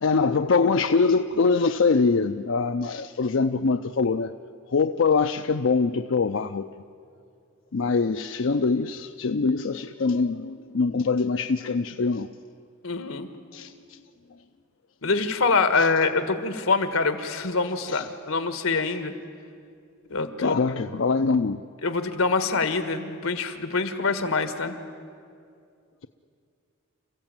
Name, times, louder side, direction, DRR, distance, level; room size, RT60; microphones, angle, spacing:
voice 1, 0.0-4.3 4.7-6.7 7.7-12.3 13.5-14.0 15.8-15.9 17.9-18.0 20.4-21.6, left 4 dB, 65° left, 8 dB, 0.5 m, -23 dB
voice 2, 12.8-13.3 15.0-19.1 20.1-20.6 21.8-24.8, left 4 dB, 85° left, 9 dB, 1.6 m, -25 dB
27.5 x 15.5 x 8.9 m, 2.4 s
head